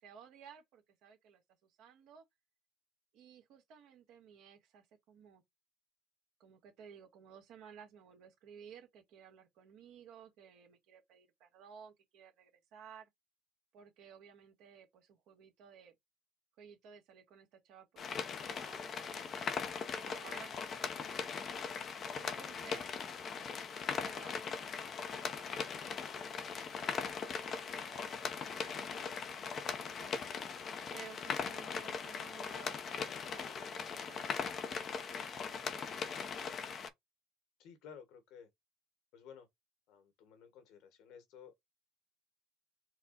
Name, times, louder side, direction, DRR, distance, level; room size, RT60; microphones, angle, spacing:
voice 1, 0.0-2.2 3.1-5.4 6.4-13.1 13.7-15.9 16.6-21.5 22.2-22.8 23.9-26.3 26.8-30.1 30.9-36.3, right 7 dB, 60° right, 1.7 m, -57 dB
sound 1, 18.0-36.9, left 6 dB, 40° left, 0.8 m, -40 dB
voice 2, 37.6-38.5 39.1-39.5 39.9-41.6, left 7 dB, 65° left, 1.7 m, -55 dB
4.6 x 2.3 x 4.2 m
supercardioid pair, 115°, 0 cm